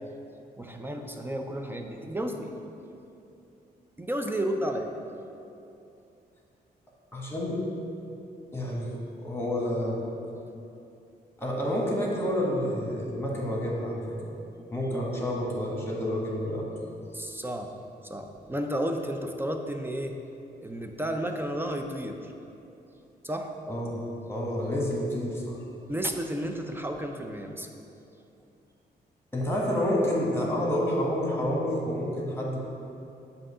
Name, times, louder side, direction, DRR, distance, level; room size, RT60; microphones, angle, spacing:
voice 1, 0.6-2.6 4.0-4.9 17.1-17.7 18.0-20.2 20.6-22.3 23.2-23.5 25.9-27.7, right 1 dB, 15° right, 4 dB, 0.4 m, -32 dB
voice 2, 7.1-7.6 8.5-10.0 11.4-14.2 14.7-16.7 23.7-25.6 29.3-32.6, equal, 15° left, -3 dB, 1.3 m, -29 dB
7.6 x 2.8 x 5.4 m, 2.7 s
cardioid pair, 85°, 17 cm